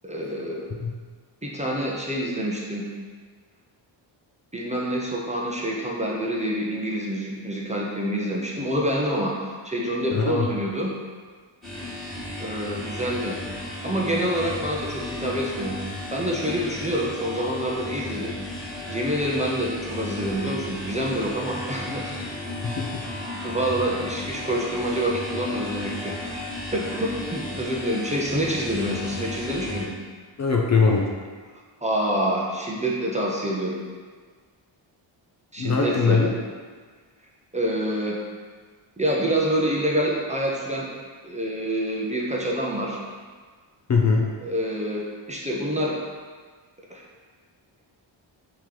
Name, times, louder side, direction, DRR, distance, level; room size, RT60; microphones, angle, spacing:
voice 1, 0.0-0.7 1.4-2.9 4.5-10.9 12.4-13.4 13.8-18.4 18.9-22.5 23.4-26.4 26.7-29.9 31.8-33.8 35.5-36.2 37.5-38.2 39.0-40.9 41.2-43.0 44.4-46.0 46.9-47.0, right 1 dB, 15° right, -3 dB, 0.6 m, -27 dB
voice 2, 10.1-10.5 22.6-23.0 30.4-31.0 35.6-36.3 43.9-44.2, left 4 dB, 35° left, -1 dB, 0.5 m, -21 dB
sound 1, 11.6-29.8, left 1 dB, ahead, 1.4 m, -34 dB
3.8 x 2.9 x 4.7 m, 1.5 s
wide cardioid pair, 115°, 47 cm